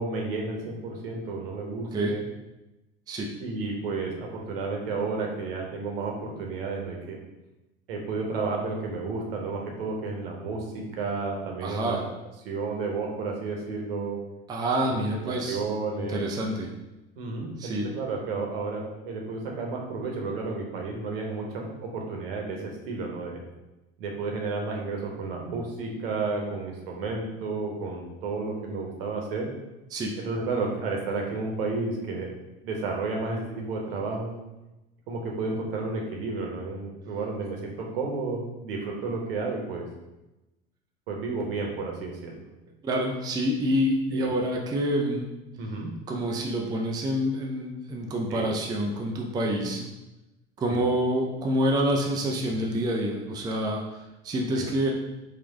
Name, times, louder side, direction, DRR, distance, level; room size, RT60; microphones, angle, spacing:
voice 1, 0.0-2.2 3.4-7.2 7.9-12.0 12.4-14.2 14.8-16.2 17.2-23.4 24.0-29.5 30.2-32.3 32.6-34.3 35.1-39.9 41.1-42.3 44.1-44.3 45.6-45.9 48.3-48.5 49.6-49.7 50.7-50.9 52.5-52.6 54.5-54.7, right 3 dB, 65° right, 0 dB, 1.0 m, -32 dB
voice 2, 11.6-12.0 14.5-15.6 16.0-16.7 17.6-17.9 29.9-30.1 42.8-45.3 46.1-49.8 50.6-54.9, equal, 15° right, 0 dB, 0.4 m, -27 dB
4.5 x 2.4 x 3.5 m, 0.99 s
figure-of-eight pair, 75°, 31 cm